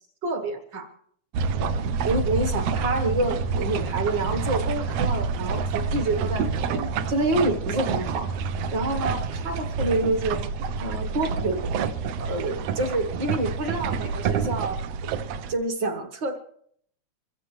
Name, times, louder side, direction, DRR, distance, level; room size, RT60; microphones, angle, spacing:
voice 1, 0.2-0.8 1.6-1.8 2.0-6.8 7.1-8.3 8.7-10.4 10.8-11.6 12.2-14.8 15.5-16.4, right 2 dB, 50° right, 6 dB, 1.6 m, -27 dB
sound 1, 1.3-15.5, right 5 dB, 75° right, 1.6 m, -28 dB
26.0 x 15.0 x 3.2 m, 0.64 s
omnidirectional pair, 3.4 m